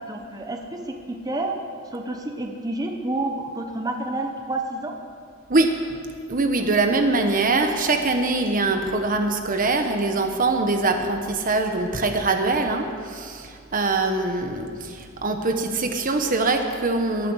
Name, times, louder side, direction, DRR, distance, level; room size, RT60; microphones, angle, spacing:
voice 1, 0.1-1.6 1.9-5.0, right 2 dB, 20° right, 3 dB, 1.1 m, -29 dB
voice 2, 6.3-17.3, right 3 dB, 40° right, 5 dB, 1.1 m, -23 dB
22.0 x 9.5 x 6.4 m, 2.2 s
head